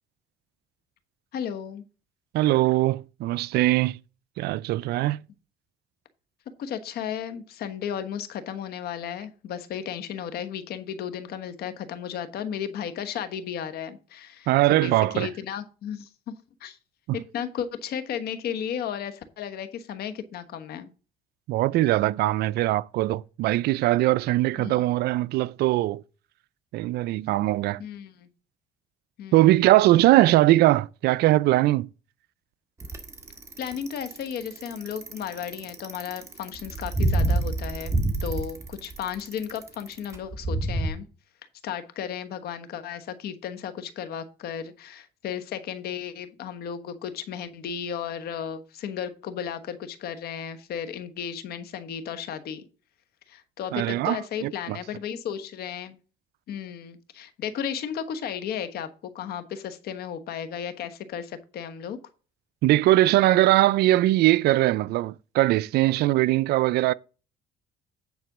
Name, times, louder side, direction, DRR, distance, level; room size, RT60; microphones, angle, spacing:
voice 1, 1.3-1.8 6.6-16.3 16.6-16.8 17.1-20.9 24.6-24.9 27.8-28.3 29.2-29.5 33.6-41.1 41.6-52.7 53.3-56.0 56.5-62.0, left 8 dB, 70° left, 1.3 m, -34 dB
voice 2, 2.3-4.0 4.4-5.2 14.5-15.3 17.1-17.2 21.5-26.0 26.7-27.8 29.3-31.9 53.7-54.8 62.6-66.9, right 16 dB, 75° right, 0.4 m, -21 dB
Bicycle, 32.8-40.9, right 2 dB, 15° right, 1.8 m, -27 dB
9.6 x 4.3 x 6.0 m
cardioid pair, 110°, 17 cm